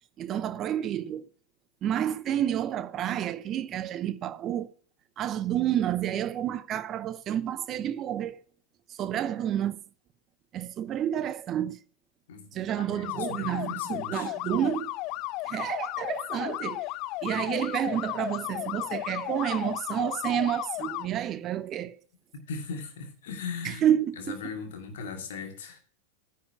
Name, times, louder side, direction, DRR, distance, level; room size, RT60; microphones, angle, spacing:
voice 1, 0.2-1.3 1.8-4.7 5.2-8.4 9.0-9.8 10.5-11.8 12.5-14.9 15.4-16.8 17.2-22.0 23.6-24.3, right 10 dB, 30° right, 0.8 m, -29 dB
voice 2, 12.3-14.3 22.3-23.9 24.2-25.8, left 5 dB, 60° left, 2.4 m, -39 dB
sound 1, 13.0-21.1, left 18 dB, 40° left, 0.4 m, -34 dB
9.9 x 5.7 x 7.1 m
figure-of-eight pair, 90°, 0 cm